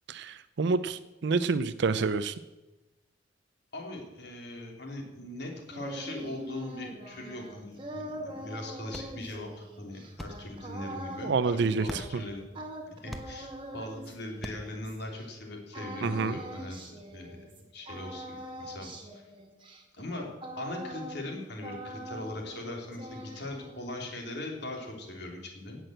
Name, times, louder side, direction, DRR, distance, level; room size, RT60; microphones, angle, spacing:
voice 1, 0.1-2.3 11.2-12.0 16.0-16.4, right 4 dB, 60° right, 13 dB, 0.5 m, -28 dB
voice 2, 3.7-12.4 13.0-17.4 17.7-19.2 19.9-20.3 20.6-25.8, left 2 dB, 60° left, 1 dB, 3.2 m, -40 dB
sound 1, 5.4-15.3 15.7-17.6 17.9-21.4 21.6-22.6 22.9-23.9, right 1 dB, 25° right, 2.1 m, -43 dB
sound 2, 8.1-14.9, equal, ahead, 1.0 m, -47 dB
17.0 x 6.2 x 7.9 m, 1.1 s
head